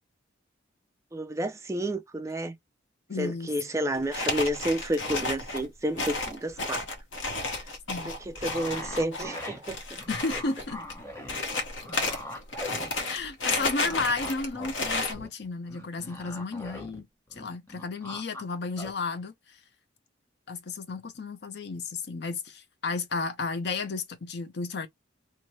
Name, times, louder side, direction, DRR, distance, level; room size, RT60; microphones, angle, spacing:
voice 1, 1.1-2.6 3.2-6.9 7.6-7.7 8.0-9.8, right 1 dB, 15° right, 0.4 m, -30 dB
voice 2, 3.1-3.5 7.9-8.1 10.1-10.8 13.1-17.1 17.4-19.6 20.5-24.9, left 3 dB, 55° left, 0.6 m, -33 dB
sound 1, 3.9-15.1, left 3 dB, 75° left, 1.0 m, -32 dB
sound 2, 8.4-13.3 13.5-17.0 17.3-18.4 18.8-18.9, left 1 dB, 15° left, 0.8 m, -42 dB
3.2 x 2.1 x 4.0 m
head